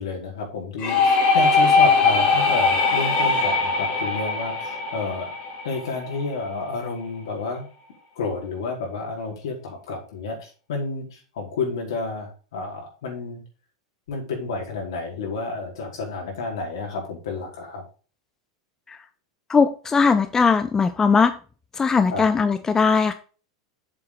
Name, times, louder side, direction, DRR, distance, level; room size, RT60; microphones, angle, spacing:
voice 1, 0.0-5.3 5.6-7.6 8.2-13.4 14.1-17.8 22.1-22.2, left 4 dB, 70° left, -1 dB, 4.8 m, -30 dB
sound 1, 0.8-6.4, left 4 dB, 45° left, 3.4 m, -21 dB
voice 2, 19.5-21.3 21.8-23.1, left 5 dB, 20° left, 11 dB, 0.7 m, -19 dB
7.8 x 7.4 x 4.1 m, 0.37 s
hypercardioid pair, 90°, 3 cm